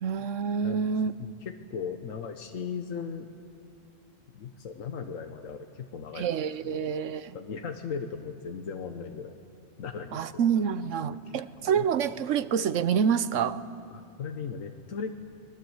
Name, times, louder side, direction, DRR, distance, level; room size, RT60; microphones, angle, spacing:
voice 1, 0.0-1.3 6.2-7.4 10.1-13.6, right 7 dB, 75° right, 14 dB, 1.1 m, -27 dB
voice 2, 1.2-3.3 4.3-6.3 6.6-6.9 7.3-9.3 9.8-10.3 11.1-11.8 13.9-15.2, left 6 dB, 85° left, 5 dB, 1.5 m, -37 dB
29.5 x 20.5 x 8.0 m, 2.7 s
omnidirectional pair, 1.3 m